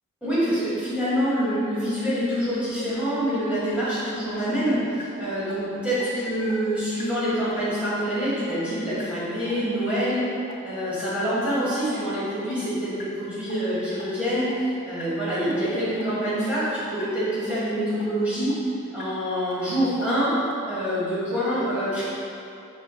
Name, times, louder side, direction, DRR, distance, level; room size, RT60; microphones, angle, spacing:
voice 1, 0.2-10.2 10.6-18.5 18.9-20.3 20.7-22.0, equal, 5° right, -12 dB, 1.5 m, -26 dB
sound 1, 5.5-5.6 6.0-6.1 6.5-6.6 7.0-7.1 7.5-7.6 8.0-8.1 8.5-8.6 9.0-9.1 9.5-9.6 10.0-10.1 10.5-10.6 11.0-11.1 11.5-11.6 12.0-12.1 12.5-12.6 13.0-13.1 13.5-13.6 14.0-14.1 14.5-14.6 15.0-15.1 15.5-15.6 16.0-16.1 16.5-16.6 17.0-17.1 17.5-17.6 18.0-18.1 18.5-18.6 19.0-19.1 19.5-19.6 20.0-20.1 20.5-20.6, left 5 dB, 40° left, 0.4 m, -44 dB
4.8 x 4.3 x 2.2 m, 2.6 s
head